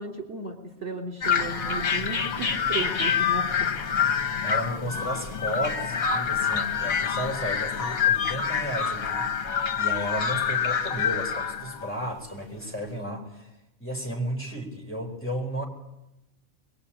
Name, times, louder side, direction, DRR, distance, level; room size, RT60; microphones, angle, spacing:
voice 1, 0.0-3.7, right 3 dB, 55° right, 2 dB, 3.6 m, -35 dB
sound 1, 1.2-12.0, left 6 dB, 80° left, 1.7 m, -26 dB
voice 2, 4.4-9.3 9.8-13.5 13.8-15.7, equal, 10° left, -1 dB, 4.4 m, -33 dB
23.0 x 21.5 x 8.8 m, 0.90 s
omnidirectional pair, 1.4 m